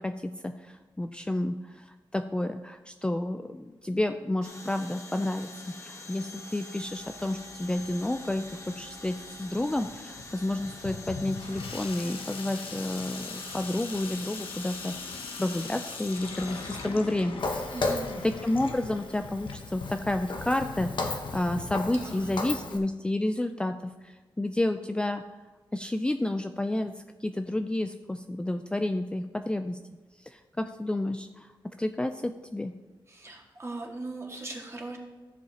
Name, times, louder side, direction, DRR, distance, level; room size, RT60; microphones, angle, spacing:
voice 1, 0.0-5.5 5.8-14.9 15.4-17.7 18.2-25.2 25.7-29.8 30.2-32.7, left 1 dB, 10° left, 7 dB, 0.4 m, -30 dB
sound 1, 4.4-16.9, left 2 dB, 35° left, 1.2 m, -45 dB
Water tap faucet / Sink (filling or washing), 6.8-22.8, left 5 dB, 85° left, 0.9 m, -42 dB
Walk footsteps, 17.4-22.8, left 3 dB, 60° left, 1.1 m, -35 dB
voice 2, 17.7-18.2 21.9-22.6 33.1-35.0, right 2 dB, 30° right, -1 dB, 1.9 m, -39 dB
14.5 x 7.4 x 2.9 m, 1.2 s
wide cardioid pair, 100°, 9 cm